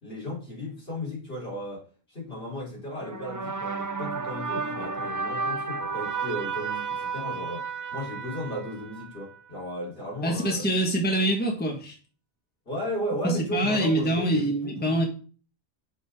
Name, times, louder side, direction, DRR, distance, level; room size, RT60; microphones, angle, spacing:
voice 1, 0.0-10.7 12.7-15.1, equal, 60° left, 3.5 m, -35 dB
sound 1, 3.0-9.4, right 5 dB, 30° right, 0.4 m, -32 dB
voice 2, 10.2-11.9 13.2-15.1, right 1 dB, 10° left, 1.2 m, -25 dB
6.4 x 5.1 x 3.4 m
omnidirectional pair, 1.1 m